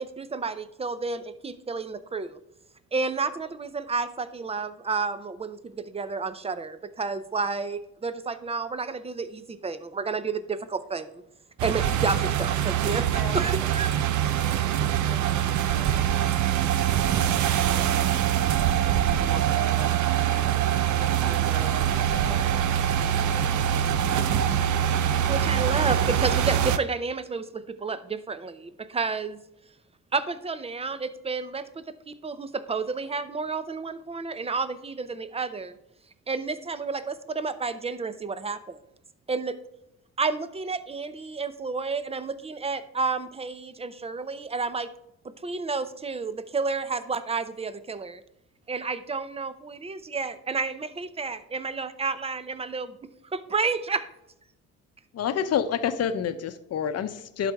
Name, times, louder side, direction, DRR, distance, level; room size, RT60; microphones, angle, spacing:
voice 1, 0.0-2.4 2.9-11.2 11.6-13.1 13.3-13.9 25.3-29.4 30.1-35.8 36.3-38.8 39.3-39.6 40.2-44.9 45.4-48.2 48.7-53.0 53.3-54.0, right 4 dB, 20° right, 12 dB, 0.6 m, -31 dB
sound 1, 11.6-26.8, right 10 dB, 75° right, 0.6 m, -24 dB
voice 2, 13.1-14.0 14.4-22.8 23.1-23.3, equal, 10° left, -1 dB, 2.0 m, -43 dB
voice 3, 55.1-57.5, left 8 dB, 55° left, 11 dB, 0.7 m, -27 dB
11.5 x 4.2 x 3.5 m, 0.83 s
cardioid pair, 90°, 30 cm